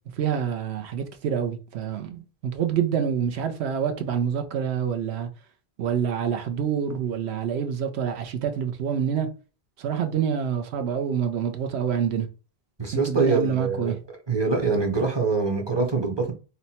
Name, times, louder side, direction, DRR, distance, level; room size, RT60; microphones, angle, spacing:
voice 1, 0.2-5.3 5.8-9.3 9.8-12.3 12.9-14.0, right 8 dB, 90° right, 0.9 m, -27 dB
voice 2, 12.8-14.0 14.3-16.3, right 4 dB, 30° right, 0.6 m, -24 dB
2.8 x 2.1 x 4.1 m
omnidirectional pair, 1.1 m